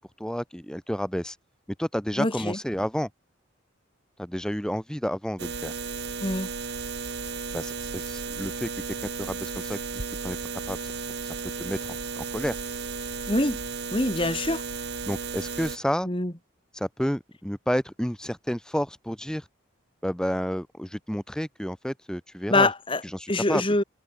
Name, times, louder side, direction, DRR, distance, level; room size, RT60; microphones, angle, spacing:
voice 1, 0.2-1.4 1.8-3.1 4.2-5.7 7.5-10.4 10.7-11.3 11.6-12.6 15.1-16.1 16.7-19.5 20.0-22.7 23.0-23.6, equal, 5° left, 0.9 m, -31 dB
voice 2, 2.2-2.6 6.2-6.5 13.3-13.6 13.9-14.6 16.1-16.3 22.5-23.0 23.3-23.8, left 2 dB, 25° left, 2.7 m, -24 dB
sound 1, 5.4-15.8, right 4 dB, 55° right, 2.5 m, -34 dB
head